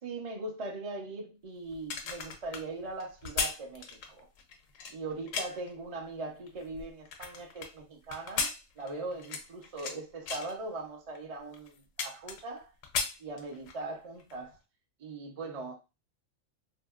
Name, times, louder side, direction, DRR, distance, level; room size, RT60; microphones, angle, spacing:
voice 1, 0.0-4.3 4.9-12.7 13.2-14.6 15.0-15.7, right 2 dB, 40° right, 0.5 m, -40 dB
sound 1, 1.7-5.7 6.3-7.7 8.1-10.0 10.3-10.5 11.1-11.2 11.5-12.6 12.8-13.8 14.2-14.4, left 5 dB, 70° left, 0.9 m, -36 dB
2.8 x 2.7 x 2.3 m
omnidirectional pair, 1.5 m